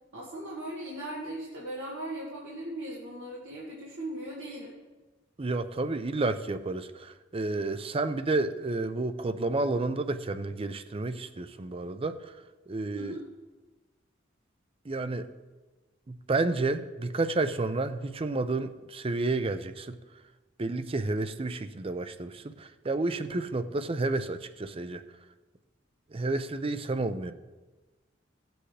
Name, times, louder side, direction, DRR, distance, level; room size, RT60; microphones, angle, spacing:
voice 1, 0.1-4.7 12.9-13.2, right 1 dB, 90° right, -5 dB, 1.9 m, -38 dB
voice 2, 5.4-12.2 12.7-13.2 14.9-15.3 16.1-20.0 20.6-25.0 26.1-27.3, right 2 dB, 30° right, 11 dB, 0.5 m, -30 dB
16.5 x 7.9 x 3.3 m, 1.2 s
head